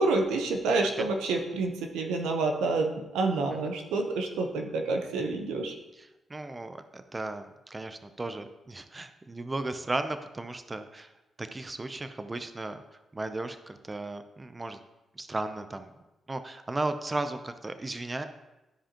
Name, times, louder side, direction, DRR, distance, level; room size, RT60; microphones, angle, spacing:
voice 1, 0.0-5.7, right 3 dB, 85° right, 4 dB, 0.8 m, -28 dB
voice 2, 5.9-11.1 11.4-12.8 13.1-14.8 15.2-15.9 16.3-18.2, right 2 dB, 30° right, 9 dB, 0.6 m, -35 dB
12.5 x 4.9 x 3.0 m, 1.0 s
supercardioid pair, 50°, 0 cm